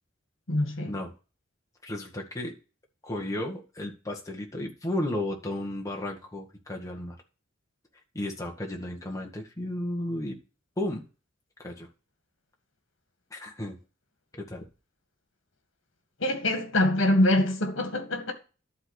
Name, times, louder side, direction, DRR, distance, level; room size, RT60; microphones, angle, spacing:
voice 1, 0.5-1.0 16.2-18.3, left 1 dB, 65° left, 1.9 m, -24 dB
voice 2, 1.8-2.5 3.0-7.2 8.1-10.4 10.8-11.0 11.6-11.9 13.3-13.8 14.3-14.7, left 1 dB, 15° left, 1.8 m, -33 dB
11.5 x 4.1 x 6.5 m
head